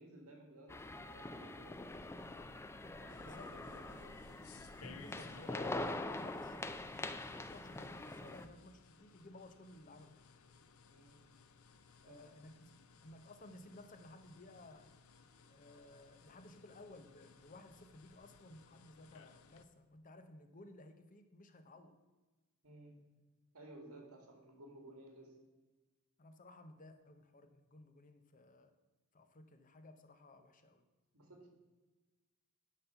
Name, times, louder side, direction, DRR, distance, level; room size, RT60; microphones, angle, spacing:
voice 1, 0.0-1.8 3.0-4.4 10.9-11.2 12.1-12.2 22.6-23.0 23.5-25.4 31.1-31.5, right 1 dB, 75° right, 3 dB, 2.2 m, -57 dB
sound 1, 0.7-8.5, left 2 dB, 10° left, 0.3 m, -44 dB
sound 2, 3.1-19.6, left 4 dB, 70° left, 0.6 m, -60 dB
voice 2, 3.2-3.5 5.0-6.6 6.9-10.3 12.0-14.9 15.5-22.0 23.9-24.0 26.2-28.7 29.1-30.8, left 2 dB, 35° left, 8 dB, 0.7 m, -57 dB
10.5 x 4.2 x 6.8 m, 1.2 s
head